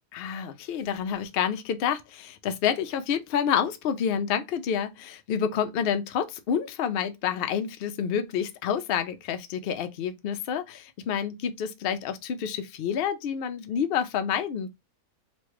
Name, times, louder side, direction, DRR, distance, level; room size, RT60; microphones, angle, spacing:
voice 1, 0.1-14.7, left 8 dB, 85° left, 0.5 m, -28 dB
3.1 x 2.3 x 3.0 m
omnidirectional pair, 1.6 m